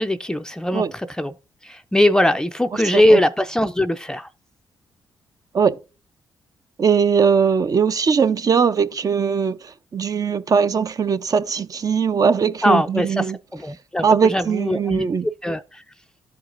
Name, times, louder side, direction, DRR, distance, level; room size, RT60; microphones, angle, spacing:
voice 1, 0.0-1.3 1.6-4.3 12.6-13.2 13.5-15.1 15.4-15.8, left 1 dB, 10° left, 0.5 m, -20 dB
voice 2, 6.8-9.6 9.9-13.4 14.0-15.3, right 6 dB, 45° right, 0.6 m, -20 dB
12.5 x 4.7 x 2.5 m
supercardioid pair, 60°, 9 cm